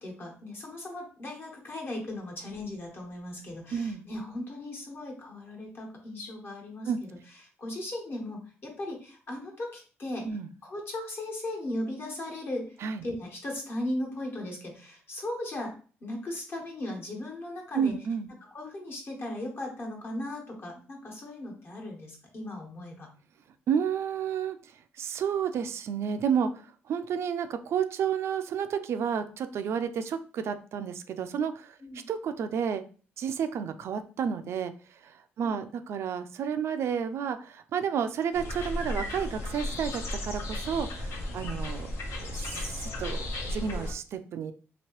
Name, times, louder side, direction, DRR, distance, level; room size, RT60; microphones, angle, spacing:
voice 1, 0.0-7.1 7.6-10.3 10.6-12.7 13.0-17.9 18.5-23.1 31.8-32.0 35.4-35.6 41.3-41.4, left 1 dB, 50° left, 0 dB, 1.2 m, -37 dB
voice 2, 3.7-4.0 6.9-7.0 10.2-10.5 12.8-13.0 17.7-18.3 23.7-24.7 25.0-31.8 32.1-32.8 33.2-41.9 42.2-43.2 43.5-44.5, right 7 dB, 65° right, 9 dB, 0.3 m, -31 dB
sound 1, 38.3-43.9, left 1 dB, 70° left, 0.8 m, -34 dB
2.9 x 2.8 x 3.0 m, 0.40 s
cardioid pair, 85°, 5 cm